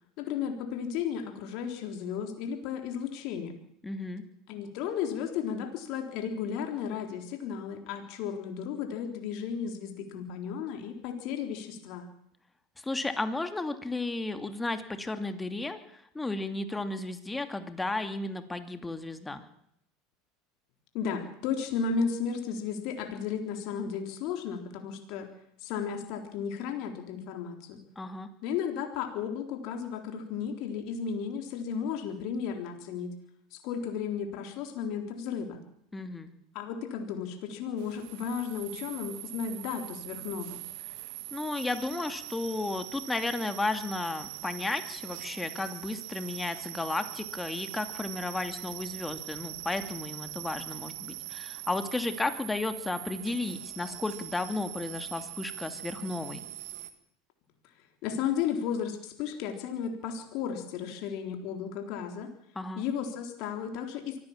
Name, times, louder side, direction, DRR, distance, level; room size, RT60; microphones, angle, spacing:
voice 1, 0.2-3.6 4.5-12.1 20.9-25.3 25.6-27.8 28.4-33.1 33.5-35.6 36.5-40.6 58.0-62.3 62.8-64.2, left 7 dB, 60° left, 4 dB, 3.8 m, -34 dB
voice 2, 3.8-4.2 12.8-15.8 16.1-19.4 28.0-28.3 35.9-36.3 41.3-56.4 62.6-62.8, left 2 dB, 15° left, 8 dB, 2.7 m, -33 dB
sound 1, 37.8-56.9, right 17 dB, 70° right, 2.0 m, -42 dB
24.0 x 16.0 x 7.4 m, 0.72 s
hypercardioid pair, 85°, 0 cm